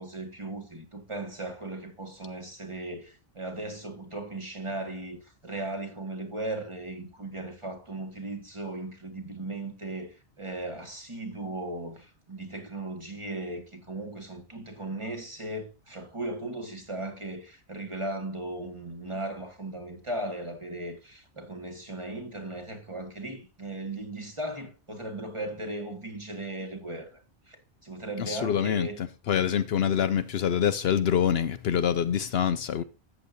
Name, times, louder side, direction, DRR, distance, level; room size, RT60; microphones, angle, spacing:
voice 1, 0.0-27.2 27.5-29.0, right 2 dB, 25° right, 2.0 m, -37 dB
voice 2, 28.2-32.8, left 8 dB, 65° left, 0.8 m, -26 dB
13.5 x 8.1 x 2.6 m
omnidirectional pair, 1.2 m